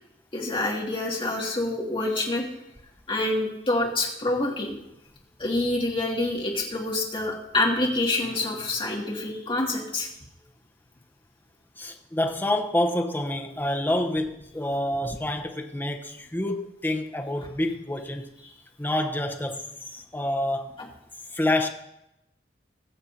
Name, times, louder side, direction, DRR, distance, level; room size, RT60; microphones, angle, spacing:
voice 1, 0.3-2.5 3.1-4.7 5.4-10.1 20.8-20.9, left 2 dB, 30° left, -2 dB, 2.2 m, -27 dB
voice 2, 11.8-18.3 18.8-20.7 21.3-21.7, left 1 dB, 10° left, 4 dB, 0.8 m, -27 dB
20.0 x 7.2 x 2.8 m, 0.87 s
head